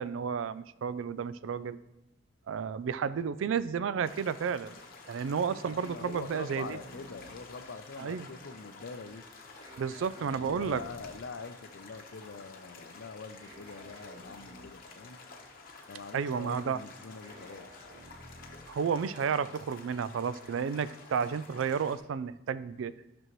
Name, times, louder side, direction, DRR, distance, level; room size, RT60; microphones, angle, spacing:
voice 1, 0.0-1.8 2.5-4.7 5.1-6.8 8.0-8.3 9.8-10.8 16.1-16.8 18.7-22.9, right 6 dB, 80° right, 16 dB, 0.3 m, -32 dB
sound 1, 4.0-22.0, left 4 dB, 50° left, 1.1 m, -51 dB
voice 2, 5.7-9.2 10.1-15.2 15.9-17.9, left 4 dB, 65° left, 11 dB, 0.5 m, -44 dB
sound 2, 5.8-7.6 9.6-11.3 13.4-14.9 17.2-18.8, equal, 25° right, 3.4 m, -53 dB
12.5 x 6.2 x 3.1 m, 0.93 s
head